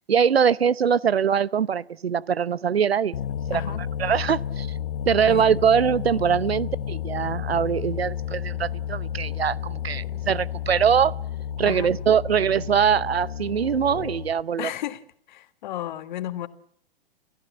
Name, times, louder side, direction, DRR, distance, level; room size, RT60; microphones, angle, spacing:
voice 1, 0.1-3.2 3.5-4.7 5.1-11.1 11.6-14.7, right 7 dB, 80° right, 0.8 m, -22 dB
sound 1, 3.1-14.4, left 9 dB, 65° left, 0.9 m, -31 dB
voice 2, 3.5-3.9 5.2-5.6 11.6-11.9 14.6-15.0 15.3-16.5, left 13 dB, 50° left, 1.6 m, -33 dB
29.5 x 15.0 x 7.1 m
figure-of-eight pair, 120°, 30 cm